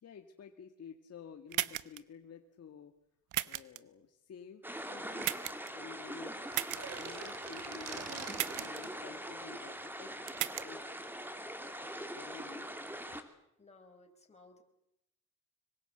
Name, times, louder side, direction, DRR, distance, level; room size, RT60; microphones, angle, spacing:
voice 1, 0.0-3.0 3.4-5.3 5.7-6.3 6.7-10.1 10.6-10.8 11.9-12.7, left 7 dB, 55° left, 5 dB, 2.0 m, -52 dB
sound 1, 1.5-2.0 3.3-3.8 5.2-5.7 6.5-6.8 8.3-8.8 10.3-10.6, right 15 dB, 80° right, 1.0 m, -35 dB
sound 2, 4.6-13.2, equal, 5° right, 3.3 m, -42 dB
voice 2, 5.8-6.2 13.6-14.6, left 3 dB, 20° left, 3 dB, 5.1 m, -61 dB
sound 3, 6.6-9.0, right 7 dB, 55° right, 3.2 m, -45 dB
25.5 x 23.0 x 8.0 m, 0.82 s
cardioid pair, 90°, 30 cm